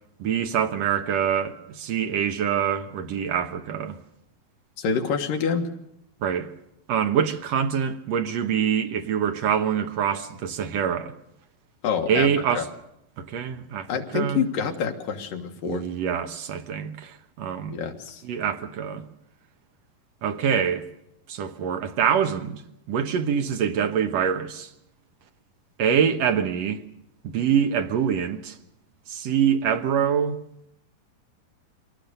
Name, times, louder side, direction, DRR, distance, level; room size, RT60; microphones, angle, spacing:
voice 1, 0.2-4.0 6.2-6.5 6.9-11.1 12.1-12.7 13.2-13.9 14.1-14.4 15.7-17.8 18.2-19.0 20.2-20.8 21.3-22.6 22.9-24.7 25.8-26.8 27.2-28.6 29.1-30.4, right 8 dB, 60° right, 1.9 m, -25 dB
voice 2, 4.8-5.7 11.8-12.3 12.5-12.6 13.9-15.8 17.7-18.2, left 6 dB, 75° left, 3.2 m, -27 dB
24.5 x 18.0 x 6.8 m
omnidirectional pair, 4.0 m